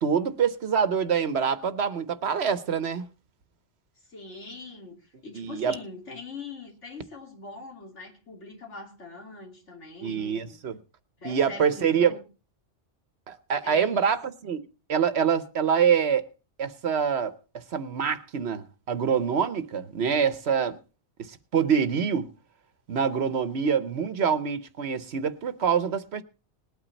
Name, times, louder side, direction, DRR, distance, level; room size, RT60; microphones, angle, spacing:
voice 1, 0.0-3.1 5.3-5.7 10.0-10.8 11.2-12.2 13.3-14.6 14.9-16.2 16.6-17.3 17.7-20.8 21.2-22.3 22.9-26.2, right 7 dB, 65° right, 1.2 m, -25 dB
voice 2, 4.0-10.6 11.2-12.2 13.6-14.1, left 3 dB, 80° left, 3.2 m, -42 dB
20.0 x 9.0 x 4.0 m
omnidirectional pair, 1.2 m